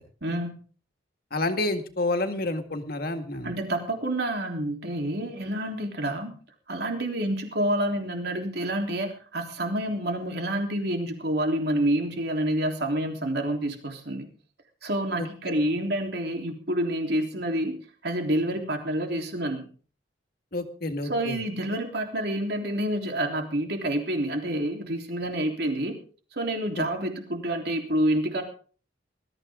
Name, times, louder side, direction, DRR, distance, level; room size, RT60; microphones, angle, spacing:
voice 1, 0.2-0.6 3.4-6.3 6.7-14.3 14.8-17.7 18.0-19.7 21.1-26.0 26.3-28.4, right 1 dB, 60° right, 3 dB, 3.5 m, -28 dB
voice 2, 1.3-3.5 15.2-15.3 20.5-21.4 26.8-26.9, left 2 dB, 55° left, 6 dB, 1.8 m, -29 dB
21.0 x 13.5 x 3.7 m, 0.40 s
head